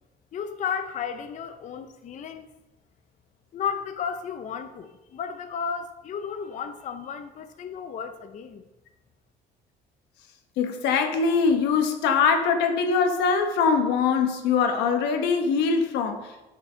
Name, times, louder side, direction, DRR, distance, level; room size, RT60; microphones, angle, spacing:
voice 1, 0.3-2.5 3.5-8.6, left 7 dB, 45° left, 8 dB, 0.6 m, -33 dB
voice 2, 10.6-16.3, left 5 dB, 90° left, 5 dB, 1.1 m, -22 dB
9.2 x 5.1 x 4.4 m, 1.0 s
cardioid pair, 110°, 17 cm